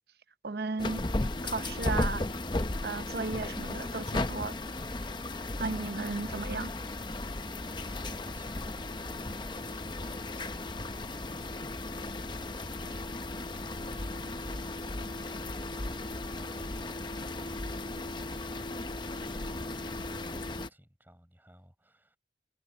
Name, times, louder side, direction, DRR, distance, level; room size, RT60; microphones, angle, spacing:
voice 1, 0.4-1.0 1.4-2.2 2.8-4.6 5.6-6.7, right 3 dB, 55° right, 0.7 m, -35 dB
sound 1, 0.8-20.7, left 2 dB, 25° left, 0.8 m, -35 dB
voice 2, 7.7-13.3 13.5-22.2, equal, 10° right, 5.6 m, -57 dB
head